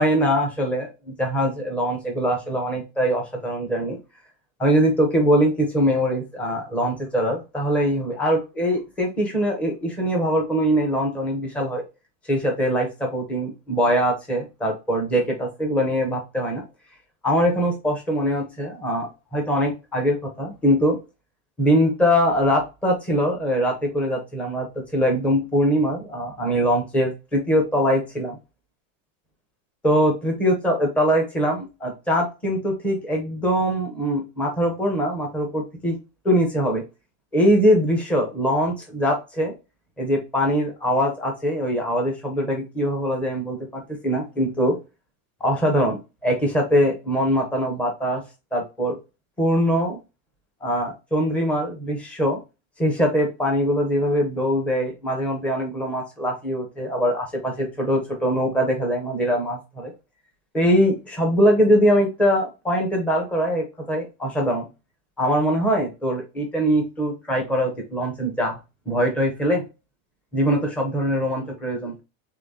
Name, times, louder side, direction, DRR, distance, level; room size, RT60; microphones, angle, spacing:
voice 1, 0.0-4.0 4.6-11.8 12.3-16.6 17.2-21.0 21.6-28.4 29.8-36.0 36.2-36.8 37.3-39.5 40.0-44.8 45.4-48.2 48.5-49.0 49.4-50.0 50.6-52.4 52.8-59.9 60.5-64.7 65.2-68.6 68.9-69.6 70.3-72.0, equal, 5° left, 1 dB, 0.4 m, -22 dB
3.6 x 3.4 x 3.9 m, 0.27 s
supercardioid pair, 170°, 41 cm